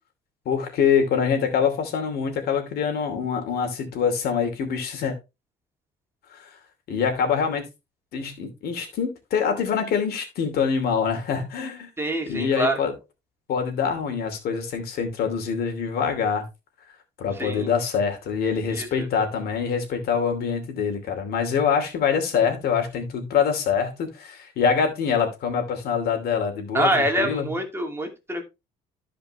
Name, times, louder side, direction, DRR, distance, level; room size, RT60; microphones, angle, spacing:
voice 1, 0.4-5.1 6.3-6.5 6.9-7.7 8.1-11.9 12.3-12.9 13.5-16.5 17.2-26.9 27.2-27.5, left 6 dB, 65° left, 2.7 m, -25 dB
voice 2, 12.0-12.8 17.3-17.7 18.7-19.1 26.7-28.4, right 1 dB, 15° right, 2.3 m, -26 dB
13.5 x 5.1 x 3.2 m
cardioid pair, 110°, 17 cm